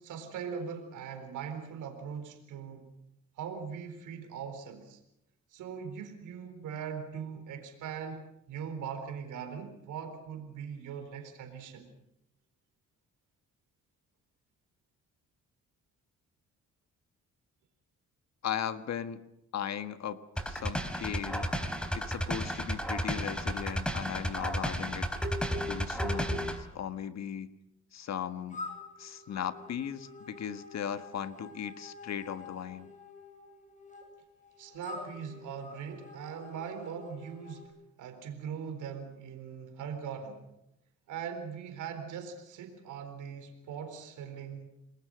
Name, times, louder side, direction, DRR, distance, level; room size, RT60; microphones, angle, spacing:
voice 1, 0.0-2.9 3.4-5.0 5.5-11.9 34.6-40.4 41.1-44.7, right 7 dB, 80° right, 6 dB, 4.0 m, -41 dB
voice 2, 18.4-19.2 19.5-21.5 21.9-25.1 25.7-27.5 27.9-28.6 29.0-32.9, left 9 dB, 60° left, 10 dB, 1.6 m, -37 dB
sound 1, 20.4-26.6, equal, 5° left, 4.2 m, -33 dB
sound 2, 28.5-37.6, left 3 dB, 25° left, 7.8 m, -48 dB
29.0 x 21.0 x 6.4 m, 0.83 s
cardioid pair, 90°, 30 cm